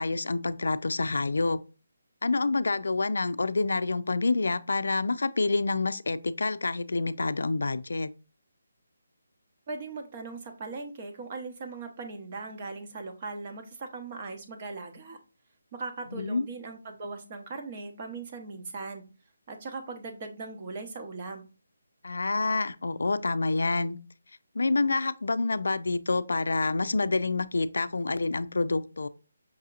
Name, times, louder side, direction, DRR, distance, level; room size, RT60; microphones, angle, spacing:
voice 1, 0.0-1.6 2.2-8.1 16.1-16.4 22.0-24.0 24.5-29.1, left 3 dB, 80° left, 0.4 m, -27 dB
voice 2, 9.7-15.2 15.7-19.0 19.5-21.4, right 3 dB, 30° right, 0.8 m, -39 dB
5.8 x 2.8 x 2.4 m
hypercardioid pair, 170°, 0 cm